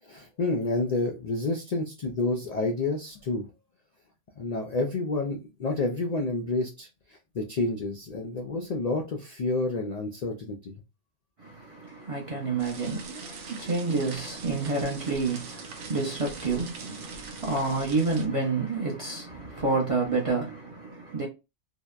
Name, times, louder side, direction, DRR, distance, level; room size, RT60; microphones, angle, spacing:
voice 1, 0.0-3.5 4.4-10.7, left 2 dB, 85° left, 0.3 m, -29 dB
voice 2, 11.4-21.3, right 3 dB, 45° right, 0.4 m, -29 dB
sound 1, 12.6-18.3, right 4 dB, 75° right, 0.9 m, -44 dB
2.7 x 2.0 x 2.2 m
omnidirectional pair, 1.3 m